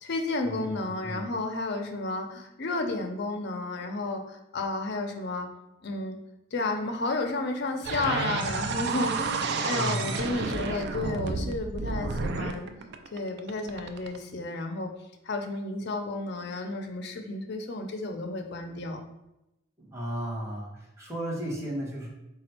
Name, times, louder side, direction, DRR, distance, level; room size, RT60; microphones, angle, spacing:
voice 1, 0.0-5.5 5.8-6.2 6.5-12.7 13.1-14.9 15.2-19.0, left 2 dB, 60° left, 4 dB, 0.6 m, -32 dB
sound 1, 7.8-14.2, right 4 dB, 60° right, 0.4 m, -31 dB
voice 2, 9.7-10.2 19.8-20.7 21.0-22.1, right 1 dB, 15° right, -5 dB, 1.1 m, -34 dB
4.2 x 2.3 x 4.3 m, 0.89 s
head